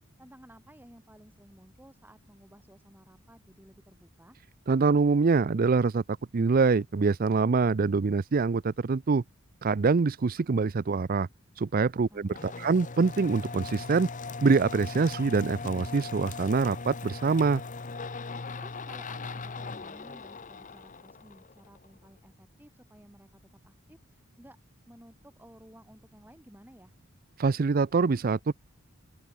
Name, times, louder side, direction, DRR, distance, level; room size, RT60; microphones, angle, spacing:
voice 1, 0.2-4.4 12.1-12.9 18.6-24.6 24.9-26.9, equal, 10° right, 7.6 m, -55 dB
voice 2, 4.7-6.0 6.3-9.2 9.6-11.3 11.6-14.1 14.4-17.6 27.4-28.5, right 4 dB, 40° right, 0.4 m, -25 dB
sound 1, 12.3-21.9, left 4 dB, 35° left, 1.0 m, -39 dB
open air
head